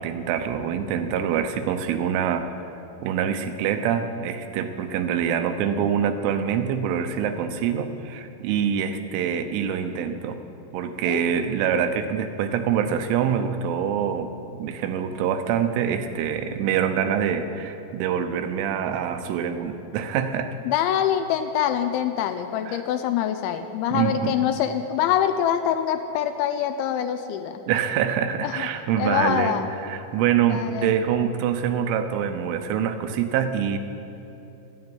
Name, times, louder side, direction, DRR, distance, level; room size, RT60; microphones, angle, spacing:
voice 1, 0.0-2.5 3.0-10.4 10.7-14.3 14.6-20.6 22.7-22.8 23.9-24.4 27.7-29.5 29.8-33.8, right 8 dB, 80° right, 8 dB, 3.2 m, -25 dB
voice 2, 20.7-27.6 28.4-28.7 29.0-29.7 30.4-30.9, left 10 dB, 80° left, 8 dB, 2.8 m, -25 dB
12.5 x 9.7 x 9.5 m, 2.8 s
omnidirectional pair, 5.6 m